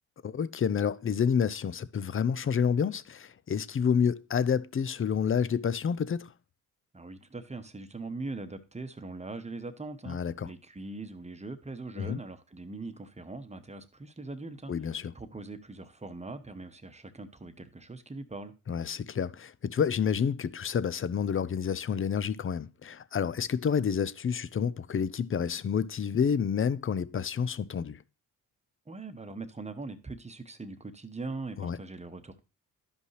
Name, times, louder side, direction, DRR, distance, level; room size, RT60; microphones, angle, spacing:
voice 1, 0.2-6.3 10.0-10.5 12.0-12.2 14.7-15.1 18.7-28.0 31.6-31.8, left 7 dB, 30° left, 0.5 m, -29 dB
voice 2, 6.9-10.2 10.4-14.7 15.1-18.5 28.9-32.4, right 3 dB, 15° right, 1.0 m, -41 dB
12.0 x 5.3 x 3.2 m
supercardioid pair, 55°, 40 cm